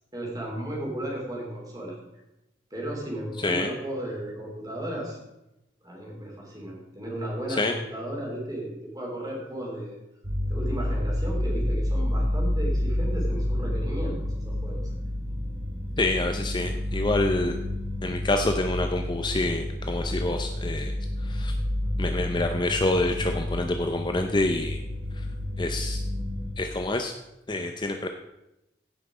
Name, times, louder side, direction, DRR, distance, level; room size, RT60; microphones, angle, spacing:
voice 1, 0.1-2.0 2.7-5.2 5.8-10.0 10.5-14.8 16.7-17.1, right 1 dB, 20° right, -2 dB, 3.1 m, -34 dB
voice 2, 3.4-3.7 7.5-7.7 16.0-17.6 18.0-20.9 21.2-21.5 22.0-24.8 25.1-25.3 25.6-26.0 26.6-27.1 27.5-28.1, left 2 dB, 25° left, 5 dB, 0.6 m, -27 dB
sound 1, 10.2-26.5, left 1 dB, 65° right, 4.8 m, -29 dB
16.0 x 5.9 x 4.9 m, 0.90 s
head